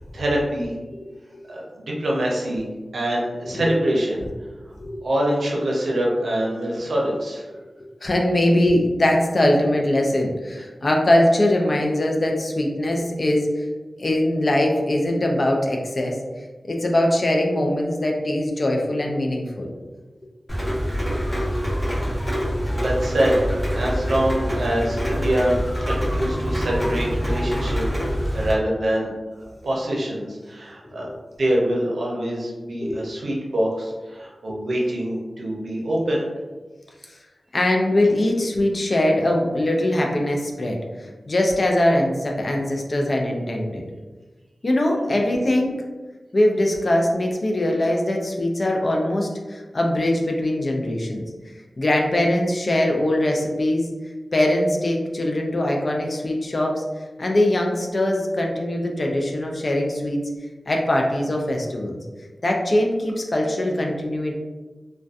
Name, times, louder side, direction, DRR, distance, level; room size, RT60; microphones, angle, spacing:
voice 1, 0.1-0.7 1.5-2.6 2.9-4.3 5.0-7.4 22.1-22.2 22.7-23.4 23.7-25.6 25.8-27.8 28.3-29.1 29.6-31.1 31.4-36.3 45.1-45.2, right 1 dB, 80° right, -3 dB, 0.6 m, -24 dB
voice 2, 3.4-3.8 4.8-5.1 8.0-13.6 14.0-16.2 16.6-19.7 32.8-33.0 34.6-34.7 37.1-37.2 37.5-43.8 44.6-45.8 46.3-51.2 51.8-53.9 54.3-56.8 57.2-60.3 60.7-62.0 62.4-64.4, left 1 dB, 55° left, 0 dB, 0.4 m, -22 dB
Rain, 20.5-28.5, equal, 5° left, 0.7 m, -25 dB
2.5 x 2.2 x 2.3 m, 1.3 s
cardioid pair, 45°, 0 cm